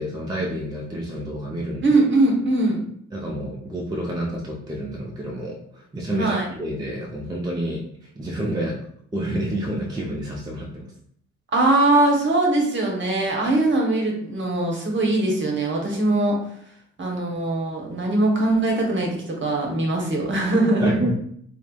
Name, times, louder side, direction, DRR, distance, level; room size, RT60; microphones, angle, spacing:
voice 1, 0.0-1.9 3.1-7.8 8.2-8.8 9.1-10.9 20.8-21.1, right 1 dB, 15° right, -2 dB, 0.4 m, -28 dB
voice 2, 1.8-2.8 6.1-6.5 11.5-16.4 17.0-20.9, right 2 dB, 40° right, 0 dB, 0.9 m, -21 dB
3.2 x 2.0 x 2.2 m, 0.66 s
cardioid pair, 90°, 30 cm